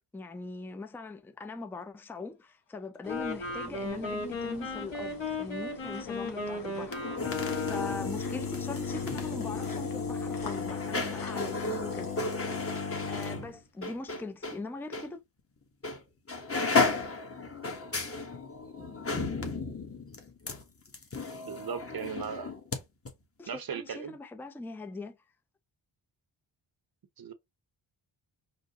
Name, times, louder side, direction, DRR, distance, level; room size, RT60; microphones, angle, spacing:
voice 1, 0.1-12.2 12.8-15.2 23.4-25.2, left 3 dB, 5° left, 0.5 m, -41 dB
Wind instrument woodwind instrument, 2.9-8.2, left 3 dB, 65° left, 1.7 m, -36 dB
sound 1, 3.0-13.4 13.9-14.0, left 4 dB, 45° left, 1.2 m, -48 dB
sound 2, 6.8-14.6 14.9-15.1 15.8-16.0 16.3-22.8 23.1-23.2, left 4 dB, 30° left, 1.1 m, -33 dB
voice 2, 21.4-22.5 23.5-24.2 27.2-27.3, right 7 dB, 45° right, 0.7 m, -37 dB
5.0 x 2.1 x 2.8 m
cardioid pair, 50°, 49 cm